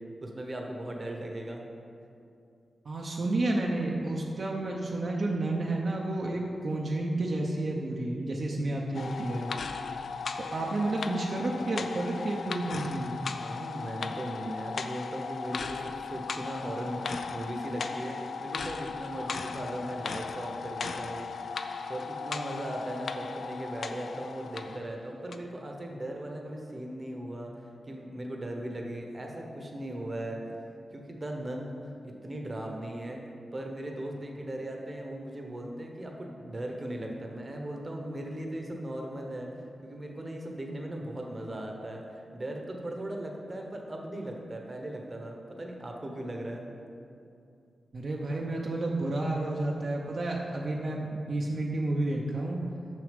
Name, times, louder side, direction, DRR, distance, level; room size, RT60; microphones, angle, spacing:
voice 1, 0.2-1.6 6.3-6.5 8.6-8.8 9.9-10.2 13.1-21.6 21.9-27.5 27.8-30.5 30.9-33.2 33.5-39.5 39.8-46.6, right 1 dB, 30° right, 1 dB, 0.9 m, -38 dB
voice 2, 2.8-9.5 10.4-13.2 47.9-52.6, right 2 dB, 55° right, -1 dB, 0.7 m, -31 dB
sound 1, 8.9-24.9 25.3-25.4, left 5 dB, 70° left, 0.4 m, -37 dB
6.5 x 6.1 x 5.1 m, 2.6 s
wide cardioid pair, 120°, 0 cm